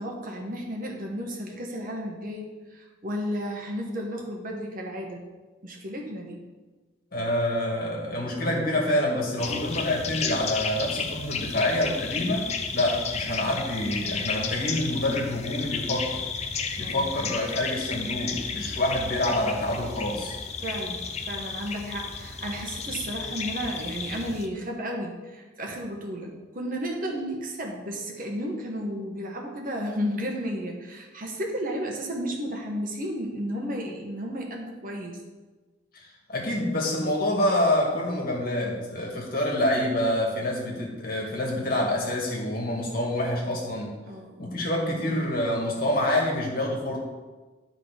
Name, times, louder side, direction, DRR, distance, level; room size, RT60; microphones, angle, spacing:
voice 1, 0.0-5.2 5.6-6.4 9.4-9.7 16.8-17.1 20.6-35.2 44.1-44.6, equal, 50° right, 0 dB, 1.3 m, -33 dB
voice 2, 7.1-16.2 16.8-20.3 36.3-44.0 44.4-47.0, left 1 dB, 50° left, -2 dB, 1.9 m, -27 dB
sound 1, 9.4-24.5, left 5 dB, 35° left, 0.6 m, -33 dB
11.0 x 3.9 x 5.1 m, 1.3 s
head